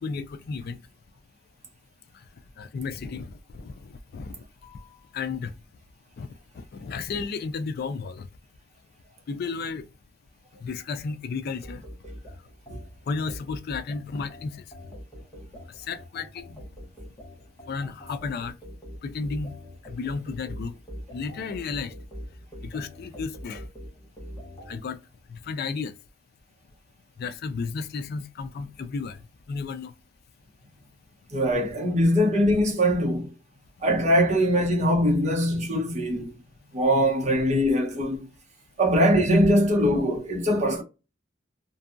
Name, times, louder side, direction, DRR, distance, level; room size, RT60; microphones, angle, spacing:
voice 1, 0.0-0.8 2.6-3.7 4.1-4.9 5.1-5.5 6.2-6.3 6.6-8.2 9.3-9.8 10.6-11.8 13.1-14.6 15.9-16.6 17.7-18.5 19.0-19.5 19.9-20.7 21.1-21.9 22.7-23.6 24.7-25.0 25.5-25.9 27.2-29.2 29.5-29.9, left 4 dB, 50° left, 0.3 m, -33 dB
sound 1, 11.6-24.8, equal, 20° left, 0.8 m, -43 dB
voice 2, 31.3-33.3 33.8-36.3 36.7-38.3 38.8-40.8, equal, 35° right, 0.8 m, -22 dB
2.7 x 2.2 x 2.4 m
head